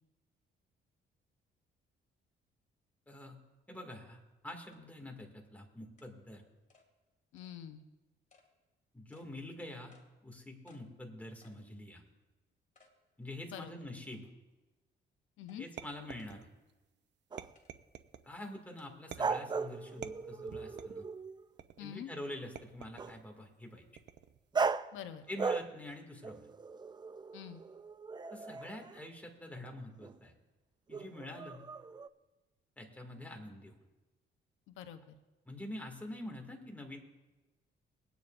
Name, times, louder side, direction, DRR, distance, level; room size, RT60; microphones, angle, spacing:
voice 1, 3.1-3.4 3.7-6.4 8.9-10.0 10.2-12.0 13.2-14.3 15.6-16.5 18.2-21.1 21.8-23.8 25.3-26.5 28.3-30.3 30.9-31.6 32.8-33.7 35.5-37.0, left 1 dB, 5° left, 1 dB, 2.2 m, -46 dB
sound 1, 4.0-4.1 4.7-4.8 5.2-5.3 6.0-6.1 6.7-6.9 7.4-7.5 8.3-8.5 9.1-9.3 9.9-10.1 10.7-10.8 11.4-11.6 12.1-12.2 12.7-13.0 13.4-13.5 14.1-14.5 15.5-15.6 16.2-16.4 17.5-17.7 18.8-18.9, left 4 dB, 40° left, 2.3 m, -66 dB
voice 2, 7.3-7.8 13.5-13.7 15.4-15.6 21.8-22.1 24.9-25.2 27.3-27.6 34.7-35.1, left 9 dB, 85° left, 8 dB, 0.8 m, -45 dB
sound 2, 15.8-16.7 17.4-18.3 19.1-19.6 20.0-21.1 21.6-22.0 22.6-23.2 24.0-24.4, right 9 dB, 60° right, 0.6 m, -49 dB
sound 3, 17.3-17.5 19.2-21.5 23.0-23.2 24.5-25.0 25.4-25.9 26.2-29.1 30.0-30.2 30.9-32.1, right 5 dB, 20° right, 0.4 m, -38 dB
22.0 x 9.3 x 2.6 m, 1.1 s
cardioid pair, 90°, 20 cm